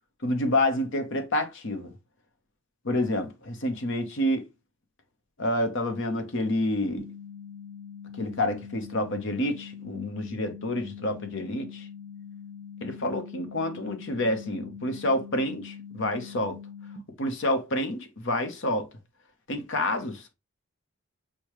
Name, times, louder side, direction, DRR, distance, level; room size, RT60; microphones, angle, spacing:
voice 1, 0.2-1.9 2.8-4.4 5.4-7.1 8.2-11.9 12.8-16.6 17.2-18.9 19.5-20.3, left 1 dB, 55° left, 0.8 m, -28 dB
sound 1, 7.0-17.0, left 7 dB, 45° right, 0.9 m, -43 dB
6.4 x 2.3 x 2.9 m
head